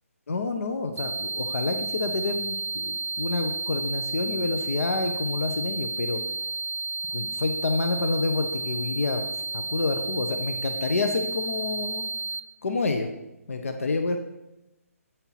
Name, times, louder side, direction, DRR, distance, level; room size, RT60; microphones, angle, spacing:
voice 1, 0.3-6.5 7.1-12.1 12.6-13.1 13.5-14.2, left 3 dB, 65° left, 5 dB, 0.8 m, -28 dB
sound 1, 1.0-12.4, right 3 dB, 70° right, 0.4 m, -32 dB
8.2 x 4.4 x 5.7 m, 0.97 s
hypercardioid pair, 175°, 8 cm